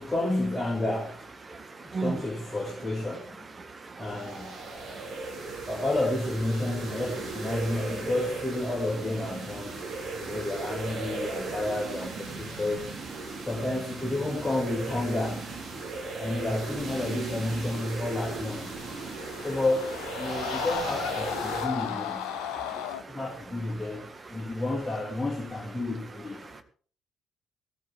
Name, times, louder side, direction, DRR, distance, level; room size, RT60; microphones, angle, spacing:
voice 1, 0.0-1.3 1.8-3.5 4.0-4.6 5.3-12.9 13.5-15.5 16.2-18.8 19.4-22.3 23.1-26.6, left 2 dB, 15° left, 2.3 m, -31 dB
voice 2, 1.5-2.1 3.6-4.1 4.7-5.7 10.0-10.4 13.2-13.5 15.8-16.2 18.8-19.5 22.4-23.2 24.4-24.5 26.4-26.6, right 4 dB, 30° right, 1.7 m, -40 dB
sound 1, 4.0-21.7, right 3 dB, 50° right, 5.2 m, -37 dB
sound 2, 18.6-23.0, left 10 dB, 65° left, 1.0 m, -35 dB
16.0 x 14.0 x 3.5 m
figure-of-eight pair, 40°, 0 cm